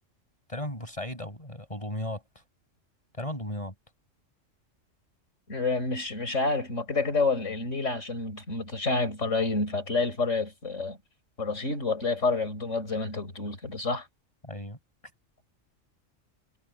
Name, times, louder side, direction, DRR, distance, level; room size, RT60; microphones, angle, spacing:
voice 1, 0.5-2.4 3.1-3.7 14.4-14.8, left 1 dB, 25° left, 6.5 m, -36 dB
voice 2, 5.5-11.0 11.4-14.1, left 3 dB, 70° left, 5.4 m, -28 dB
omnidirectional pair, 1.3 m